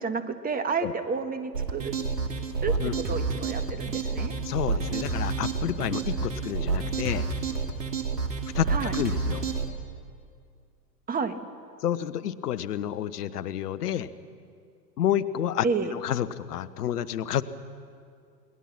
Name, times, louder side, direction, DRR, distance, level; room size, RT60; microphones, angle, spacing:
voice 1, 0.0-1.9 2.6-2.8 3.1-4.4 8.7-8.9 11.1-11.4 15.6-15.9, right 5 dB, 15° right, 10 dB, 1.5 m, -30 dB
sound 1, 1.5-9.7, right 4 dB, 75° right, 2.5 m, -29 dB
voice 2, 4.4-7.3 8.5-9.5 11.8-14.1 15.0-15.6 15.9-17.4, left 11 dB, 65° left, 14 dB, 1.2 m, -29 dB
28.0 x 20.5 x 6.1 m, 2.2 s
hypercardioid pair, 100°, 50 cm